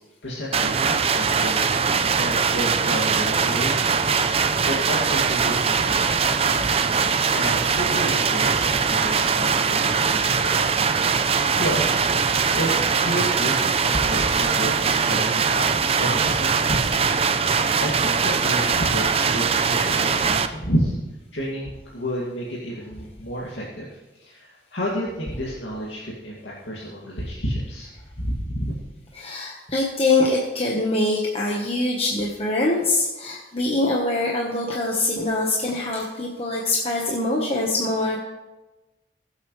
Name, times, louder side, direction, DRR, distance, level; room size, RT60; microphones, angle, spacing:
voice 1, 0.2-6.8 7.3-11.0 11.3-12.7 13.0-17.4 17.8-21.0 21.3-27.9 28.2-28.7, equal, 85° left, -6 dB, 2.3 m, -31 dB
sound 1, 0.5-20.5, right 5 dB, 35° right, 0.5 m, -21 dB
voice 2, 6.9-7.2 12.3-12.6 17.6-17.8 29.1-38.2, left 2 dB, 35° left, -3 dB, 1.3 m, -24 dB
20.5 x 8.1 x 3.3 m, 1.1 s
head